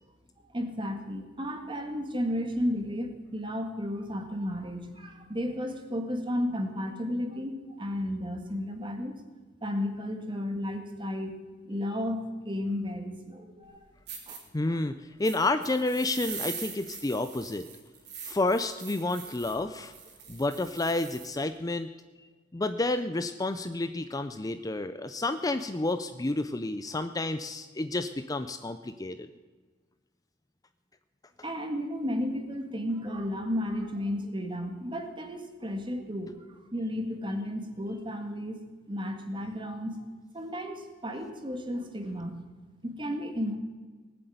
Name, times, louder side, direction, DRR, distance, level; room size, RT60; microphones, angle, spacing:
voice 1, 0.5-9.2 9.6-11.4 11.7-13.8 14.3-14.4 14.7-14.8 31.4-36.4 36.7-40.0 40.3-42.4 42.8-43.6, equal, 25° right, 5 dB, 1.9 m, -33 dB
sound 1, 13.6-13.7 14.1-14.4 15.2-21.4, right 6 dB, 60° right, 3.4 m, -42 dB
voice 2, 14.5-14.9 15.2-17.7 18.2-19.9 20.3-21.9 22.5-29.3, left 2 dB, 20° left, 10 dB, 0.5 m, -30 dB
19.0 x 7.9 x 9.3 m, 1.4 s
head